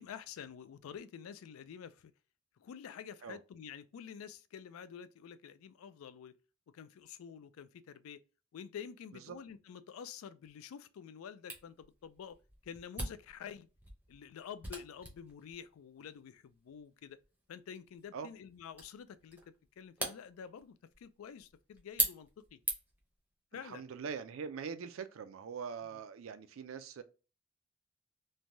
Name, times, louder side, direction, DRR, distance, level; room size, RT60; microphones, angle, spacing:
voice 1, 0.0-2.1 2.6-6.3 6.7-8.2 8.5-12.4 12.6-13.7 14.1-17.2 17.5-22.6 23.5-23.8, left 7 dB, 80° left, 0.3 m, -49 dB
Camera, 11.5-23.1, right 2 dB, 10° right, 0.6 m, -42 dB
voice 2, 23.6-27.0, right 6 dB, 70° right, 0.4 m, -42 dB
3.2 x 2.1 x 2.6 m
head